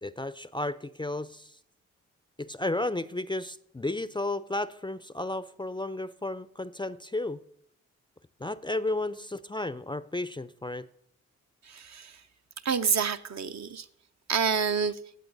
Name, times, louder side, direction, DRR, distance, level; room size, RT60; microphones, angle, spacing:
voice 1, 0.0-1.6 2.4-7.4 8.4-10.9, left 2 dB, 15° left, 0.5 m, -33 dB
voice 2, 11.6-12.2 12.6-13.9 14.3-15.0, right 6 dB, 50° right, 0.7 m, -28 dB
17.5 x 7.8 x 4.0 m
hypercardioid pair, 40°, 36 cm